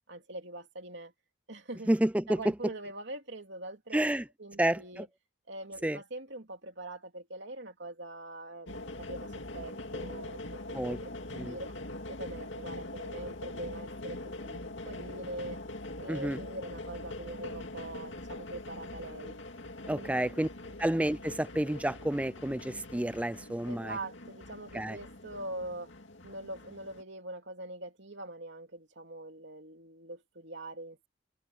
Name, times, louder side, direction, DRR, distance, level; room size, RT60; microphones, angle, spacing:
voice 1, 0.1-1.1 1.5-1.9 2.3-4.0 4.4-5.1 5.5-10.6 11.0-11.1 11.5-11.7 12.1-14.6 14.8-15.6 16.0-19.4 19.9-20.3 23.7-25.9 26.2-31.1, right 1 dB, 60° right, 3.3 m, -43 dB
voice 2, 1.9-2.4 3.9-4.2 4.6-5.1 5.8-6.0 10.7-11.0 11.3-11.6 16.1-16.4 19.9-20.5 20.8-24.0 24.7-25.0, right 1 dB, 5° right, 0.4 m, -30 dB
sound 1, 8.7-27.0, left 2 dB, 65° left, 2.3 m, -43 dB
head